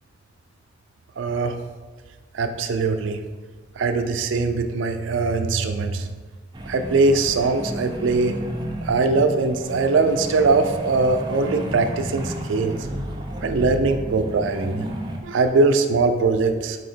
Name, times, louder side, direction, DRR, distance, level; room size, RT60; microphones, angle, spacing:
voice 1, 1.2-1.6 2.3-3.2 3.8-6.1 6.7-8.4 8.8-12.8 13.4-14.9 15.2-16.8, right 3 dB, 85° right, 8 dB, 0.4 m, -21 dB
sound 1, 6.5-15.2, right 1 dB, 25° right, 0.4 m, -32 dB
4.2 x 2.8 x 4.2 m, 1.3 s
head